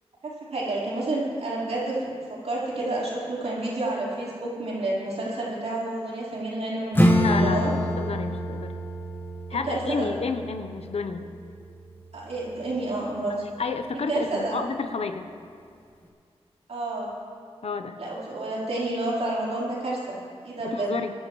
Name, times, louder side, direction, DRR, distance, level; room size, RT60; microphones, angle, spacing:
voice 1, 0.2-7.0 7.3-7.7 9.7-10.1 12.1-13.4 14.1-14.6 16.7-17.1 18.0-20.9, right 2 dB, 75° right, -6 dB, 4.5 m, -29 dB
Acoustic guitar / Strum, 6.9-12.2, equal, 20° left, 1.8 m, -26 dB
voice 2, 7.2-8.7 9.5-11.3 13.6-15.3 17.6-18.0 20.6-21.1, left 4 dB, 65° left, 7 dB, 0.9 m, -31 dB
25.5 x 12.0 x 3.2 m, 2.4 s
wide cardioid pair, 95°, 11 cm